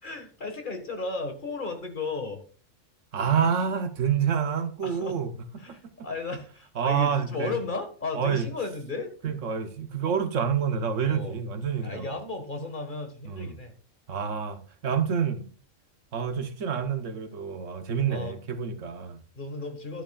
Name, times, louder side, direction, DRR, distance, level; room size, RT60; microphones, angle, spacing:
voice 1, 0.0-2.4 4.8-5.2 5.6-9.1 11.1-11.3 11.8-13.7 18.1-18.4 19.3-20.0, left 3 dB, 40° left, 1.8 m, -34 dB
voice 2, 3.1-5.3 6.8-7.5 8.1-8.5 9.2-12.1 13.2-13.5 14.1-15.5 16.1-19.2, right 7 dB, 75° right, 1.3 m, -28 dB
11.5 x 9.9 x 2.4 m
omnidirectional pair, 1.3 m